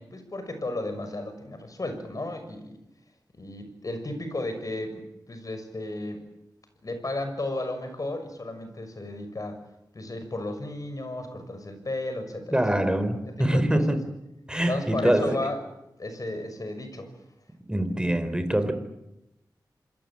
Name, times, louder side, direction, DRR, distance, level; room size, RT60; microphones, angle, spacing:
voice 1, 0.0-2.8 3.3-6.2 6.8-9.6 9.9-12.6 13.5-13.8 14.7-15.6 16.0-17.1, left 2 dB, 50° left, 8 dB, 6.4 m, -33 dB
voice 2, 12.5-14.0 14.5-15.5 17.7-18.7, right 1 dB, 10° right, 10 dB, 4.2 m, -24 dB
27.0 x 22.0 x 8.8 m, 0.89 s
cardioid pair, 55°, 8 cm